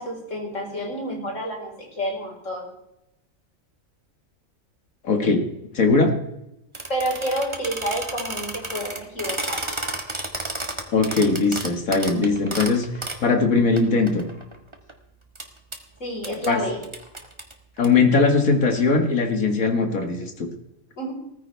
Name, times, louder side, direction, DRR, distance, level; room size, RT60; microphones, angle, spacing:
voice 1, 0.0-2.6 6.9-9.6 16.0-16.8 20.9-21.1, equal, 65° left, -2 dB, 4.8 m, -29 dB
voice 2, 5.0-5.4 5.7-6.1 10.9-14.2 16.5-16.6 17.8-20.5, left 4 dB, 85° left, 5 dB, 2.2 m, -20 dB
sound 1, 6.7-13.2 13.8-13.9 14.1-14.9 15.3-15.4 15.7-15.8 16.2-16.5 16.8-17.9, right 2 dB, 20° right, 1.5 m, -31 dB
18.5 x 14.5 x 3.4 m, 0.86 s
omnidirectional pair, 1.4 m